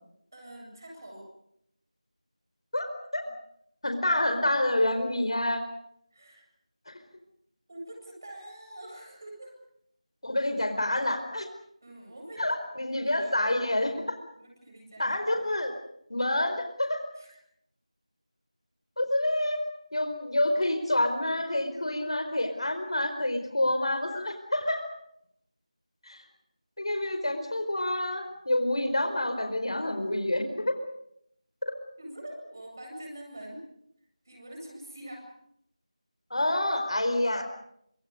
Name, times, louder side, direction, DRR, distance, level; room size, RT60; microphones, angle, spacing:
voice 1, 0.3-1.3 6.1-6.5 7.7-9.5 11.8-13.5 14.4-15.2 17.1-17.4 32.0-33.6 34.2-35.3, right 1 dB, 30° right, 2 dB, 8.0 m, -45 dB
voice 2, 2.7-3.2 3.8-5.6 6.9-7.0 10.2-11.5 12.4-14.2 15.0-15.7 16.1-17.0 19.0-19.6 19.9-24.9 26.0-26.2 26.8-30.8 36.3-37.4, left 1 dB, 50° left, 7 dB, 4.7 m, -28 dB
30.0 x 26.0 x 5.2 m, 0.72 s
figure-of-eight pair, 180°, 4 cm